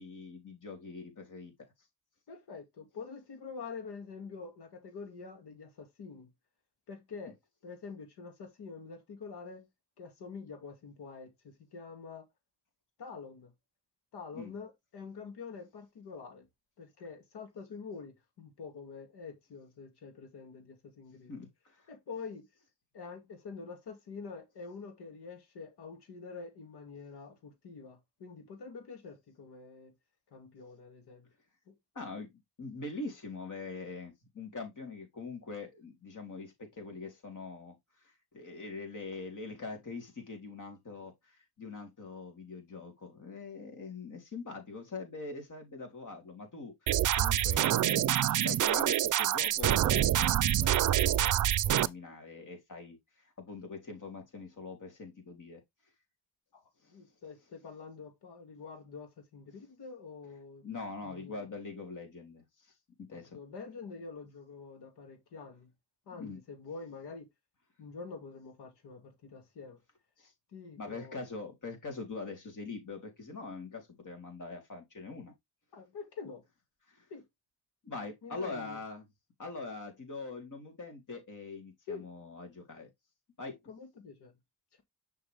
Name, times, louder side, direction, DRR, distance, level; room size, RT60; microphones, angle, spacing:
voice 1, 0.0-1.5 14.3-14.5 21.3-21.9 31.9-53.0 53.4-55.6 56.8-57.0 60.6-62.7 63.1-63.4 66.1-66.4 70.2-70.3 70.8-75.3 76.9-77.1 77.8-79.1 79.4-82.9 83.4-83.6, left 3 dB, 50° left, 4.1 m, -43 dB
voice 2, 2.3-6.3 6.9-7.4 7.6-9.7 10.0-12.3 13.0-13.5 14.1-16.5 16.8-21.5 21.9-22.5 22.9-29.9 30.3-31.3 31.7-31.8 56.5-60.7 61.0-61.5 63.1-65.7 66.1-67.3 67.8-69.8 70.5-71.2 75.7-76.4 77.1-77.2 78.2-78.8 81.9-82.1 83.7-84.3, left 5 dB, 90° left, 2.5 m, -46 dB
sound 1, 46.9-51.9, right 12 dB, 55° right, 0.5 m, -26 dB
6.7 x 6.0 x 3.5 m
cardioid pair, 85°, 38 cm